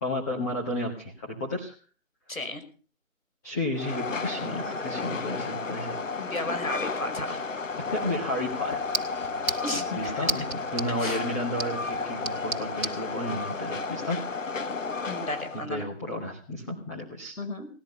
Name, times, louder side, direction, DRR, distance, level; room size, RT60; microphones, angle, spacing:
voice 1, 0.0-1.7 3.4-6.0 7.9-8.8 9.9-10.4 10.7-14.2 15.7-17.4, left 1 dB, 15° left, -2 dB, 1.6 m, -32 dB
voice 2, 2.3-2.6 6.2-7.4 9.6-10.3 11.0-11.2 15.1-15.9 17.4-17.7, left 1 dB, 90° left, 7 dB, 5.4 m, -33 dB
Train, 3.7-15.7, left 4 dB, 70° left, 1.3 m, -33 dB
sound 1, 7.7-13.0, right 3 dB, 50° right, 2.1 m, -36 dB
19.0 x 13.5 x 5.5 m, 0.41 s
figure-of-eight pair, 165°, 40 cm